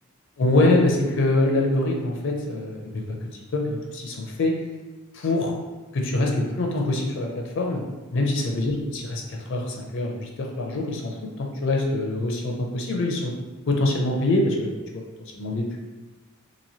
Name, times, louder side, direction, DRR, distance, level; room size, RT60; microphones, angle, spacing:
voice 1, 0.4-3.2 3.5-4.6 5.1-5.5 5.9-7.8 8.1-13.3 13.7-15.0 15.3-15.8, left 2 dB, 55° left, 1 dB, 0.4 m, -24 dB
3.0 x 2.6 x 2.7 m, 1.2 s
head